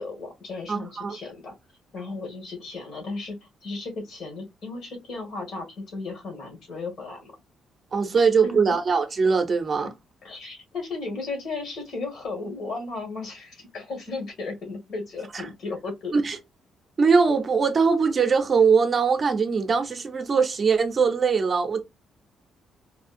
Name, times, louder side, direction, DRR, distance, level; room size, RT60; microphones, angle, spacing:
voice 1, 0.0-1.6 1.9-7.3 8.4-8.8 9.8-9.9 10.2-16.2, left 3 dB, 60° left, 1.7 m, -35 dB
voice 2, 0.7-1.2 7.9-9.9 15.3-15.4 16.1-16.4 17.0-21.8, right 5 dB, 30° right, 0.6 m, -21 dB
4.2 x 2.3 x 2.5 m
cardioid pair, 150°, 0 cm